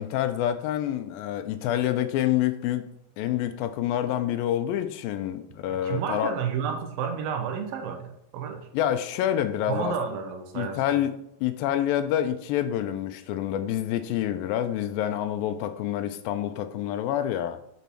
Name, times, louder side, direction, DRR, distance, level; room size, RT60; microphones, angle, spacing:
voice 1, 0.0-2.8 3.2-6.3 8.7-10.0 10.5-11.1 11.4-17.6, left 11 dB, 80° left, 10 dB, 2.3 m, -27 dB
voice 2, 5.7-8.7 9.7-10.8, right 7 dB, 85° right, 5 dB, 2.7 m, -31 dB
6.9 x 4.1 x 6.0 m, 0.74 s
omnidirectional pair, 4.2 m